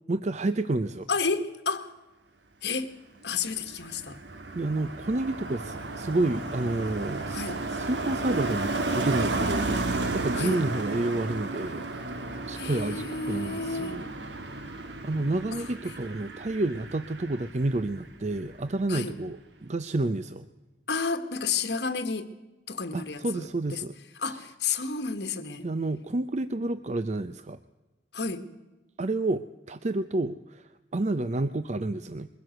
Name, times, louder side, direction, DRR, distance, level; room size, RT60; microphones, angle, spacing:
voice 1, 0.1-1.1 3.7-3.8 4.5-11.8 12.5-14.0 15.0-20.5 22.9-23.9 25.6-27.6 29.0-32.3, right 2 dB, 40° right, 0.6 m, -30 dB
voice 2, 1.1-1.9 2.6-3.0 3.2-4.2 7.3-7.6 10.3-10.6 12.6-14.0 15.5-15.6 18.9-19.1 20.9-22.3 22.7-23.8 24.2-25.7 28.1-28.4, left 4 dB, 65° left, 1.6 m, -31 dB
Car passing by, 3.3-18.1 18.4-18.7, right 2 dB, 80° right, 1.7 m, -33 dB
22.5 x 15.5 x 7.8 m
head